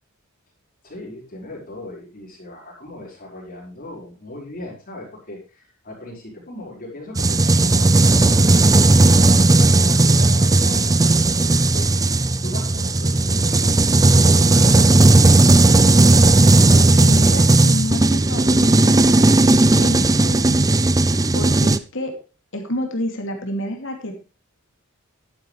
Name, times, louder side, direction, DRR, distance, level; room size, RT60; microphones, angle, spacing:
voice 1, 0.8-15.2, left 1 dB, 40° left, -2 dB, 5.0 m, -38 dB
sound 1, 7.2-21.8, right 2 dB, 15° right, 0.5 m, -15 dB
voice 2, 16.2-19.0 19.5-22.1 22.5-24.1, left 1 dB, 65° left, 3 dB, 2.7 m, -30 dB
12.0 x 10.5 x 3.3 m, 0.32 s
head